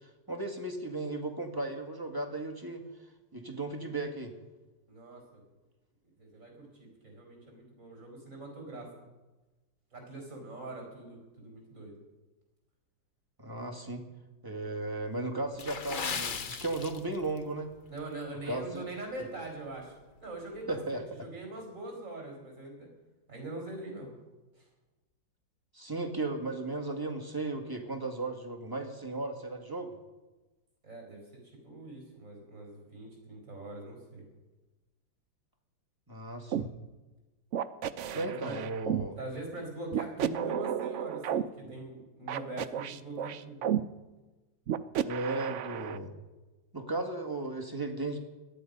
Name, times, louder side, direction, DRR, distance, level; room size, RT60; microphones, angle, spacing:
voice 1, 0.0-2.9 3.3-4.3 13.4-14.0 14.4-17.7 18.5-18.8 20.7-21.0 25.7-29.9 36.1-36.7 38.1-39.2 41.6-41.7 45.0-46.1 46.7-48.2, right 2 dB, 10° right, 2 dB, 1.7 m, -35 dB
voice 2, 4.9-5.4 6.2-8.9 9.9-12.0 17.9-19.9 20.2-22.9 23.3-24.2 24.5-24.6 30.8-31.2 31.6-34.3 38.1-38.6 39.2-43.8, right 2 dB, 40° right, 2 dB, 5.1 m, -42 dB
Water / Splash splatter, 15.5-17.4 17.7-18.0 18.6-18.8 19.2-19.3, left 5 dB, 55° left, 0.5 m, -37 dB
sound 1, 36.5-36.7 37.5-39.1 39.9-41.4 42.3-43.8 44.7-46.0, right 9 dB, 85° right, 0.6 m, -32 dB
18.0 x 12.5 x 5.4 m, 1.1 s
omnidirectional pair, 2.0 m